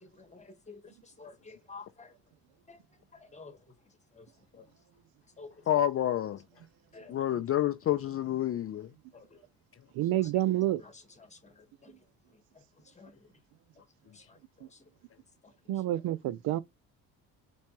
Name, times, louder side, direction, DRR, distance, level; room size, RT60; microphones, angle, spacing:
voice 1, 0.0-2.1 2.7-2.8 3.1-3.6 4.1-4.3 4.5-4.7 5.4-5.9 6.9-7.1 9.1-9.4 10.8-11.9 12.5-13.3 14.1-14.9 15.4-15.5, left 4 dB, 20° left, 1.4 m, -52 dB
voice 2, 5.7-6.4 7.1-8.9, left 11 dB, 40° left, 0.4 m, -28 dB
voice 3, 9.9-10.8 15.7-16.6, right 14 dB, 70° right, 0.5 m, -28 dB
4.3 x 3.0 x 2.9 m
supercardioid pair, 80°, 38 cm